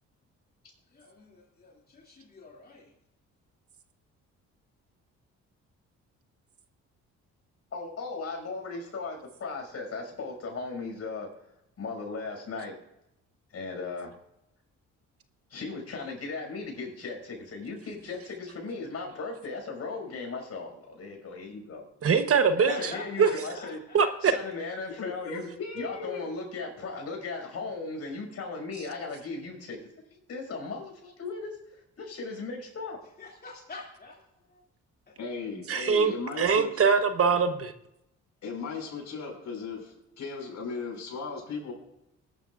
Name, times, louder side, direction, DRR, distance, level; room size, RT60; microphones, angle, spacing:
voice 1, 0.9-2.9 22.6-24.3 33.2-34.2 34.5-34.6, left 3 dB, 30° left, -3 dB, 2.6 m, -44 dB
voice 2, 7.7-11.3 11.8-12.8 13.5-14.1 15.5-21.9 22.8-23.8 24.2-25.5 25.7-29.8 30.1-31.6 32.0-33.0, left 4 dB, 55° left, 1 dB, 5.8 m, -37 dB
voice 3, 22.0-22.7 23.2-23.3 23.9-24.4 35.7-37.7, right 6 dB, 50° right, 9 dB, 1.1 m, -23 dB
voice 4, 25.0-26.3 35.2-36.8 38.4-41.7, left 4 dB, 70° left, 0 dB, 5.8 m, -37 dB
20.5 x 12.0 x 2.5 m, 0.83 s
cardioid pair, 90°, 30 cm